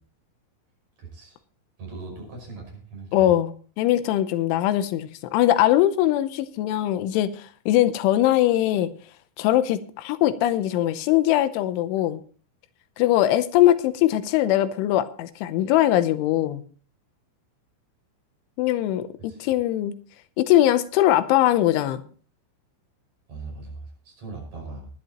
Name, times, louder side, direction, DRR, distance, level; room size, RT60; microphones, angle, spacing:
voice 1, 1.0-1.4 1.8-3.3 19.3-19.5 23.3-24.9, right 3 dB, 35° right, 1 dB, 6.6 m, -39 dB
voice 2, 3.1-8.9 9.4-12.2 13.0-16.6 18.6-19.1 19.4-19.9 20.4-22.0, left 13 dB, 85° left, 12 dB, 3.3 m, -21 dB
19.5 x 11.5 x 2.9 m, 0.42 s
omnidirectional pair, 5.4 m